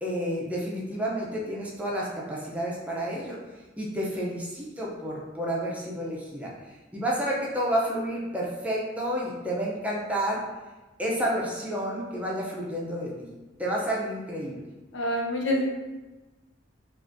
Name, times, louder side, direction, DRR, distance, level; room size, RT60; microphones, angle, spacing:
voice 1, 0.0-3.4 3.8-6.5 6.9-10.4 11.0-13.3 13.6-14.6, equal, 10° right, -4 dB, 0.5 m, -30 dB
voice 2, 14.9-15.6, left 1 dB, 75° left, -1 dB, 0.6 m, -26 dB
3.6 x 2.5 x 2.5 m, 1.2 s
head